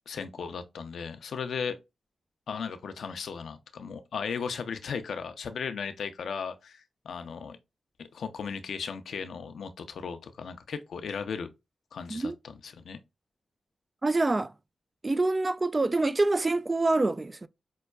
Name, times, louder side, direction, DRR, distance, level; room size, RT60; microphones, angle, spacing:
voice 1, 0.1-1.8 2.5-7.6 8.0-11.5 11.9-13.0, left 6 dB, 80° left, 0.5 m, -36 dB
voice 2, 14.0-14.5 15.0-17.5, right 2 dB, 35° right, 0.3 m, -26 dB
5.3 x 2.2 x 2.3 m
supercardioid pair, 40°, 0 cm